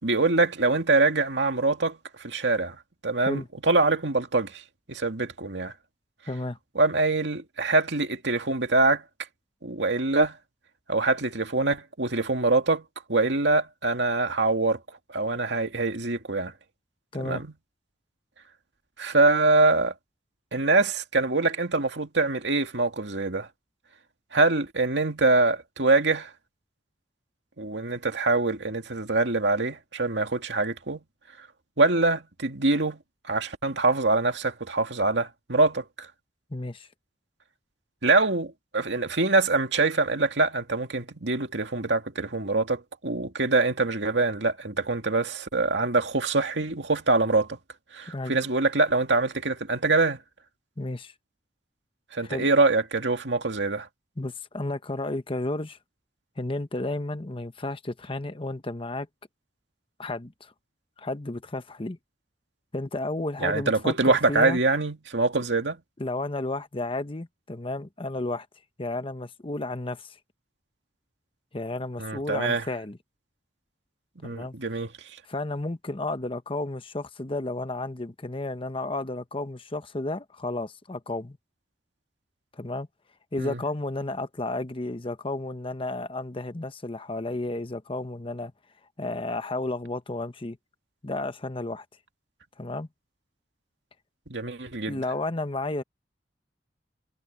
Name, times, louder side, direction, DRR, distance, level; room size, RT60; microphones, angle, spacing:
voice 1, 0.0-4.6 4.9-5.7 6.8-9.0 9.6-10.4 10.9-14.8 15.1-16.5 17.2-17.5 19.0-19.9 20.5-23.5 24.3-26.3 27.6-31.0 31.8-33.0 33.3-36.1 38.0-47.6 47.9-50.2 52.1-53.9 63.4-65.8 72.0-72.6 74.2-74.9 83.4-83.6 94.3-95.0, right 3 dB, 80° right, 2.4 m, -24 dB
voice 2, 6.3-6.6 17.1-17.4 36.5-36.9 48.1-48.4 50.8-51.1 52.2-52.5 54.2-55.8 56.4-59.1 60.0-60.5 61.0-62.0 62.7-64.6 66.0-68.5 68.8-70.2 71.5-73.0 74.2-74.5 75.2-81.4 82.5-82.9 83.3-88.5 89.0-90.6 91.0-91.8 92.6-92.9 94.9-95.8, left 2 dB, 30° left, 1.1 m, -32 dB
head